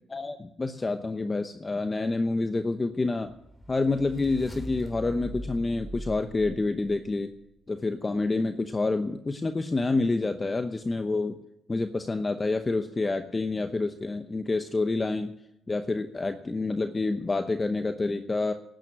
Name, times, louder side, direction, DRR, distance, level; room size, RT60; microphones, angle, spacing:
voice 1, 0.1-3.3 3.7-7.3 7.7-11.4 11.7-15.3 15.7-18.5, left 3 dB, 25° left, 7 dB, 0.8 m, -28 dB
sound 1, 3.3-7.5, right 1 dB, 5° left, 3.3 m, -41 dB
12.0 x 9.2 x 9.3 m, 0.82 s
cardioid pair, 90°, 0 cm